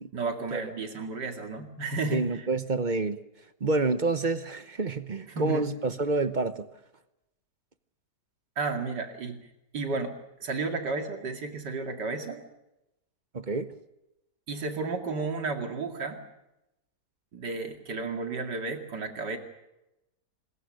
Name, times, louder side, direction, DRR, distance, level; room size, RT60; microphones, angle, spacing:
voice 1, 0.1-2.5 5.3-5.7 8.6-9.5 9.7-12.4 14.5-16.2 17.3-19.4, right 3 dB, 85° right, 5 dB, 2.9 m, -32 dB
voice 2, 2.1-3.2 3.6-6.7 13.3-13.8, right 3 dB, 35° right, 12 dB, 0.8 m, -28 dB
26.0 x 21.0 x 6.5 m, 0.92 s
omnidirectional pair, 1.8 m